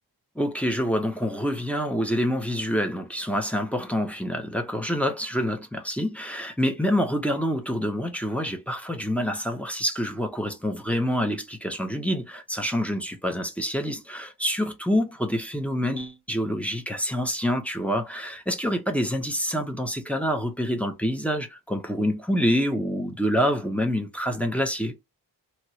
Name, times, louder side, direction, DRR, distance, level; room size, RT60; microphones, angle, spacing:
voice 1, 0.4-24.9, equal, 5° left, 0.7 m, -27 dB
2.9 x 2.9 x 2.8 m
wide cardioid pair, 115°, 43 cm